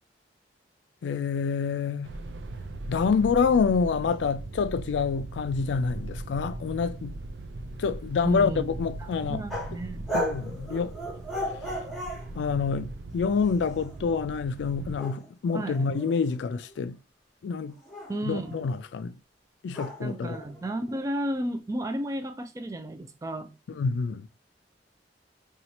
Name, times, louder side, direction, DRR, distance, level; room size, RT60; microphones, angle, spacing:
voice 1, 1.0-2.1 2.9-7.1 7.8-9.4 10.1-10.9 12.4-17.0 17.4-17.7 18.2-19.1 19.6-20.4 23.8-24.3, left 5 dB, 85° left, 0.3 m, -27 dB
sound 1, 2.0-15.0, right 2 dB, 85° right, 0.5 m, -39 dB
voice 2, 8.2-10.0 15.5-15.8 18.1-18.6 20.0-23.8, right 1 dB, 20° right, 0.4 m, -33 dB
sound 2, 9.5-9.8 10.1-12.3 13.2-14.0 14.9-16.8 17.7-18.8 19.7-21.0, equal, ahead, 1.0 m, -36 dB
2.8 x 2.4 x 4.1 m
head